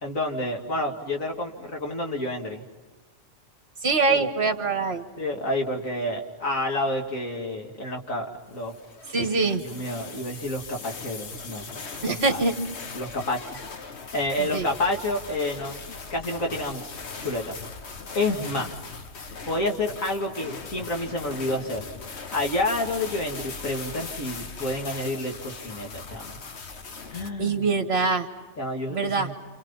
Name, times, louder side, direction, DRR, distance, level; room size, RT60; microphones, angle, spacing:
voice 1, 0.0-2.6 4.1-4.2 5.2-8.7 9.6-11.7 12.1-12.4 12.9-13.4 14.1-15.8 16.1-16.8 17.2-17.6 18.1-18.8 19.5-21.8 22.3-26.4 27.1-27.6 28.6-29.3, left 1 dB, 80° left, 1 dB, 3.1 m, -29 dB
voice 2, 3.8-5.0 9.1-9.6 12.0-12.5 14.4-14.7 27.4-28.3 28.9-29.3, right 4 dB, 50° right, 7 dB, 1.9 m, -24 dB
sound 1, 8.5-27.3, left 4 dB, 55° left, 1.5 m, -39 dB
30.0 x 28.5 x 5.7 m, 1.3 s
omnidirectional pair, 1.4 m